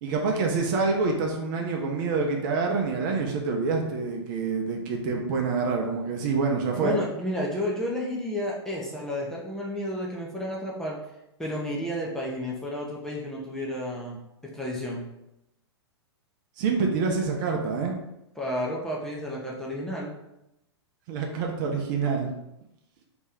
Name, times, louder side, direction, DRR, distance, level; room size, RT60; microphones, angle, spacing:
voice 1, 0.0-7.0 16.6-18.0 21.1-22.3, right 4 dB, 45° right, 1 dB, 0.7 m, -26 dB
voice 2, 6.8-11.0 11.4-15.0 18.4-20.1, left 1 dB, 5° left, -4 dB, 0.8 m, -31 dB
3.1 x 3.0 x 3.7 m, 0.86 s
figure-of-eight pair, 110°, 14 cm